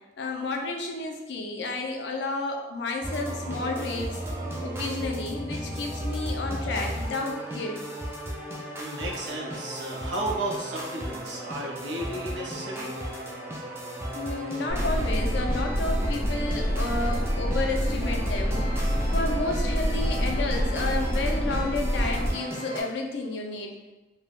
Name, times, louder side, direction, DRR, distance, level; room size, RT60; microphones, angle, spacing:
voice 1, 0.2-4.2 4.6-7.8 14.1-18.7 19.1-23.7, left 3 dB, 70° left, 2 dB, 0.4 m, -31 dB
sound 1, 3.0-22.8, right 1 dB, 15° right, 0.3 m, -35 dB
voice 2, 8.8-12.9, right 1 dB, 75° right, -2 dB, 0.6 m, -33 dB
sound 2, 14.7-22.3, equal, 5° left, 1.3 m, -27 dB
3.2 x 2.1 x 2.4 m, 1.1 s
head